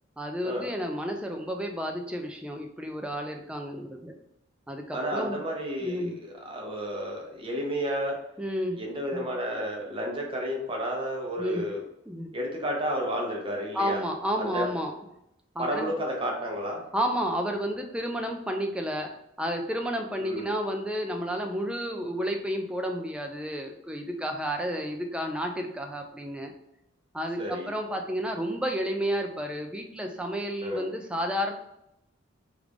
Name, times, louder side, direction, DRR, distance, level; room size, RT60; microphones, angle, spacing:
voice 1, 0.2-4.1 4.7-5.4 5.8-6.1 8.4-8.8 9.1-9.3 11.4-11.6 12.1-12.3 13.7-14.9 15.6-15.9 16.9-19.1 19.4-26.5 27.1-31.5, equal, 5° right, 3 dB, 0.3 m, -31 dB
voice 2, 4.9-8.2 8.8-11.8 12.3-14.0 14.3-14.7 15.6-16.8 20.2-20.5 27.4-27.7 30.6-30.9, equal, 25° right, -1 dB, 0.7 m, -31 dB
3.2 x 2.4 x 3.4 m, 0.82 s
head